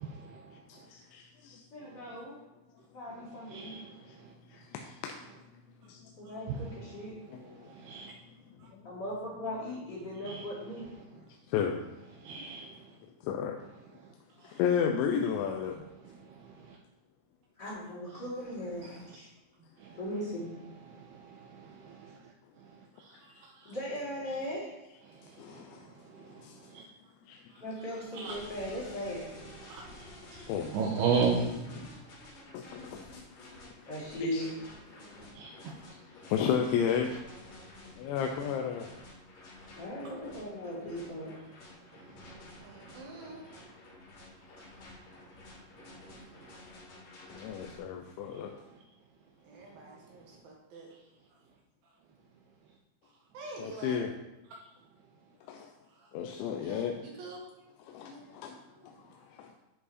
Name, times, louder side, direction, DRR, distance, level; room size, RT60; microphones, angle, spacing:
voice 1, 0.1-0.5 3.5-3.9 6.5-6.6 7.7-8.1 10.3-10.4 12.2-12.8 14.4-14.5 16.3-16.8 19.8-20.0 20.9-22.2 23.0-23.7 25.1-26.8 28.1-28.4 29.6-30.4 30.7-31.5 35.4-35.7, right 5 dB, 80° right, -1 dB, 2.5 m, -35 dB
voice 2, 0.7-1.6 4.1-4.2 4.5-5.2 5.9-6.0 7.3-7.7 8.7-8.8 11.5-11.8 13.2-13.6 14.4-15.8 25.4-25.9 26.4-26.6 27.3-27.4 30.5-30.7 32.5-33.5 34.2-34.5 36.3-37.2 38.0-38.9 47.3-48.5 53.6-54.1 55.5-55.7 56.1-57.0 57.9-58.6 58.8-58.9 59.2-59.5, left 7 dB, 90° left, 3 dB, 3.0 m, -33 dB
voice 3, 1.7-2.4 2.9-3.8 6.2-7.2 8.8-10.8 12.3-12.4 17.6-19.3 20.0-20.5 23.6-24.7 27.6-29.3 33.9-34.5 39.8-41.3, equal, 30° left, -7 dB, 2.4 m, -38 dB
sound 1, 28.2-47.8, left 2 dB, 65° left, 5.1 m, -51 dB
voice 4, 42.6-43.4 49.4-50.9 53.3-54.0 56.5-57.5, right 2 dB, 65° right, -1 dB, 2.8 m, -46 dB
10.5 x 4.8 x 4.2 m, 0.98 s
omnidirectional pair, 5.2 m